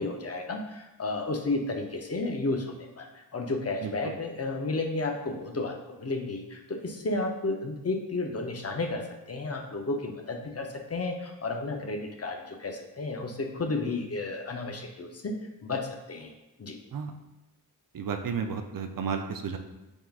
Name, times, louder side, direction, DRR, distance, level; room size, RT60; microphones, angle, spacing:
voice 1, 0.0-16.3 16.6-16.8, left 2 dB, 40° left, 3 dB, 0.6 m, -32 dB
voice 2, 3.8-4.1 16.9-17.1 17.9-19.6, right 6 dB, 60° right, 6 dB, 0.5 m, -32 dB
4.5 x 3.6 x 2.3 m, 1.0 s
wide cardioid pair, 60°, 37 cm